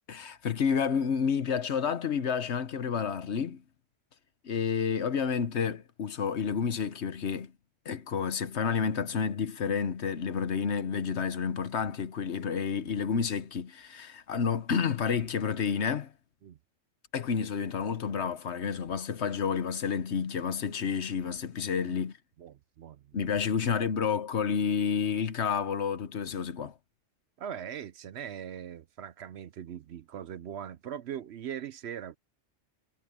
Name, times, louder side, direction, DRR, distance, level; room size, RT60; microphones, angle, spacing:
voice 1, 0.1-3.6 4.4-7.5 7.8-16.1 17.1-22.1 23.1-26.7, left 6 dB, 65° left, 1.2 m, -30 dB
voice 2, 22.4-23.2 23.7-23.8 27.4-32.2, right 9 dB, 65° right, 0.9 m, -41 dB
omnidirectional pair, 1.3 m